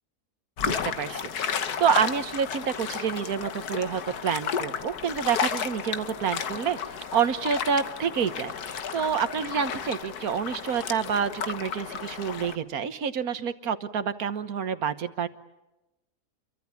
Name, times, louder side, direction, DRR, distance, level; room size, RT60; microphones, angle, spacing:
sound 1, 0.6-12.6, left 7 dB, 85° left, 1.7 m, -33 dB
voice 1, 0.6-6.8 7.1-15.3, right 7 dB, 70° right, 11 dB, 1.7 m, -28 dB
29.0 x 24.0 x 7.2 m, 1.0 s
omnidirectional pair, 1.6 m